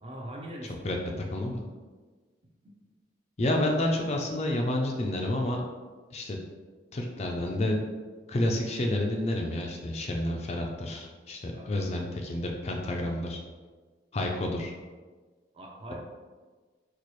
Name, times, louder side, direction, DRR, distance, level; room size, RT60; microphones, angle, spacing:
voice 1, 0.0-1.0 2.4-2.7 11.5-12.0 15.5-15.9, right 1 dB, 30° right, -1 dB, 0.5 m, -43 dB
voice 2, 0.8-1.6 3.4-5.6 6.1-6.4 6.9-7.8 8.3-13.4 14.1-14.7, left 1 dB, 35° left, 1 dB, 0.4 m, -29 dB
4.2 x 2.3 x 3.1 m, 1.4 s
head